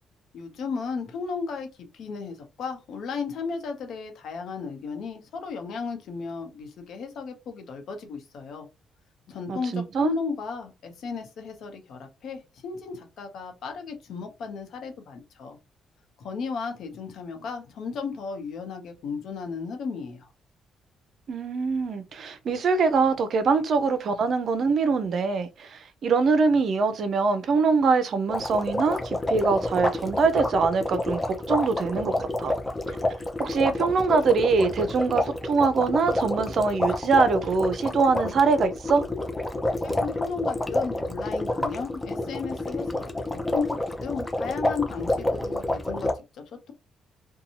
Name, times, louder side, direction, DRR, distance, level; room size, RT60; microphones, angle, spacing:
voice 1, 0.3-1.7 1.9-8.7 9.3-15.6 16.2-20.3 39.8-46.7, left 5 dB, 70° left, 0.8 m, -34 dB
voice 2, 9.5-10.1 21.3-32.5 32.9-33.0 33.4-39.0, right 4 dB, 60° right, 0.5 m, -23 dB
sound 1, 28.3-46.1, left 1 dB, 15° left, 0.6 m, -28 dB
2.7 x 2.2 x 2.9 m
cardioid pair, 90°, 0 cm